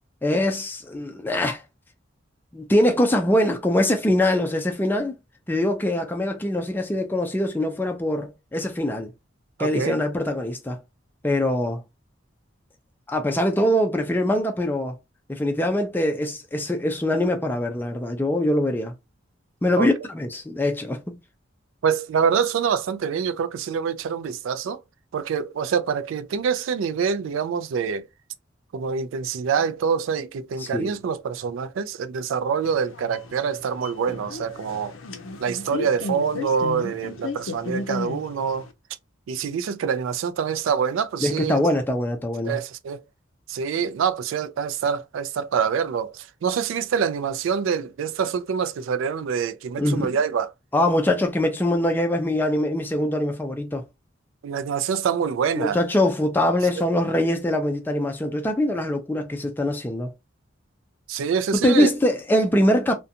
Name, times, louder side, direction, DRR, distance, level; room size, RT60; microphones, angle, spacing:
voice 1, 0.2-1.6 2.5-5.1 5.5-9.1 9.6-10.8 11.2-11.8 13.1-15.0 15.3-18.9 19.6-21.2 30.6-30.9 41.2-42.6 49.8-50.2 50.7-53.8 55.6-60.1 61.6-63.0, left 1 dB, 10° left, 0.4 m, -23 dB
voice 2, 9.6-10.0 19.8-19.9 21.8-24.8 25.1-28.1 28.7-34.9 35.4-38.7 39.3-41.6 42.4-43.0 43.5-50.5 54.4-55.8 56.8-56.9 61.1-61.9, right 6 dB, 85° right, 0.3 m, -25 dB
sound 1, 32.6-38.7, left 3 dB, 90° left, 0.5 m, -34 dB
2.5 x 2.2 x 2.7 m
head